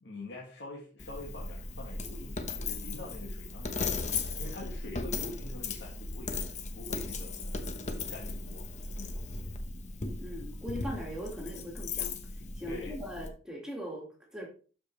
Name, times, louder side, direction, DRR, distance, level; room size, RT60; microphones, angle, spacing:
voice 1, 0.0-4.0 4.4-7.8 8.1-8.7 8.9-9.2 12.7-13.0, left 2 dB, 70° left, -3 dB, 1.8 m, -45 dB
Coin (dropping), 1.0-13.3, left 3 dB, 40° left, 0.9 m, -37 dB
voice 2, 10.2-12.2 12.5-14.5, equal, 5° right, -1 dB, 2.0 m, -40 dB
12.5 x 5.1 x 3.3 m, 0.38 s
head